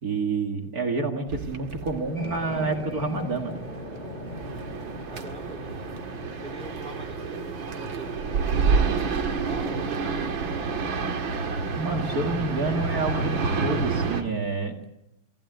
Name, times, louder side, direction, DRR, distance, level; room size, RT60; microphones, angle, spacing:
voice 1, 0.0-3.6 11.7-14.8, right 3 dB, 45° right, 3 dB, 2.4 m, -28 dB
sound 1, 1.3-14.2, right 5 dB, 65° right, 2.5 m, -29 dB
sound 2, 2.1-13.5, left 1 dB, 20° left, 2.7 m, -40 dB
voice 2, 5.1-5.6 6.1-10.7, right 1 dB, 5° left, 2 dB, 2.7 m, -45 dB
24.5 x 15.5 x 9.1 m, 0.90 s
omnidirectional pair, 2.3 m